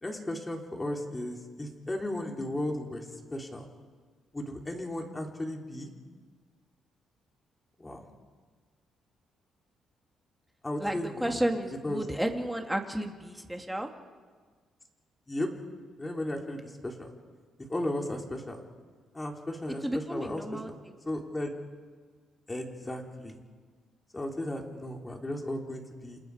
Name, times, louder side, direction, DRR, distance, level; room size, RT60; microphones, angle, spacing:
voice 1, 0.0-3.7 4.3-5.9 7.8-8.1 10.6-11.4 11.8-12.1 15.3-15.5 16.0-17.1 17.7-18.6 19.1-20.8 21.1-21.5 22.5-23.4 24.1-26.2, left 1 dB, 20° left, 1 dB, 4.1 m, -35 dB
voice 2, 10.8-13.9 19.8-20.7, right 1 dB, 5° right, 3 dB, 2.8 m, -32 dB
29.5 x 27.5 x 5.2 m, 1.5 s
cardioid pair, 90°, 0 cm